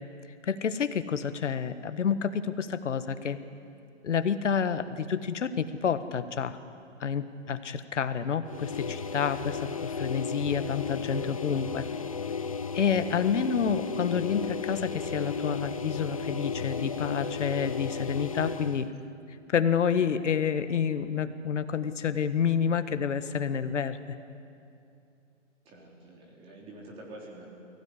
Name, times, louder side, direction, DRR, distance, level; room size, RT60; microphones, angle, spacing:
voice 1, 0.4-3.4 4.0-6.6 7.0-11.8 12.7-18.9 19.5-24.0, left 7 dB, 70° left, 11 dB, 1.6 m, -29 dB
sound 1, 8.5-18.9, left 5 dB, 30° left, 0.4 m, -34 dB
voice 2, 11.5-11.9 25.6-27.5, right 1 dB, 15° right, -2 dB, 3.7 m, -47 dB
23.5 x 16.0 x 9.9 m, 2.6 s
hypercardioid pair, 160°, 38 cm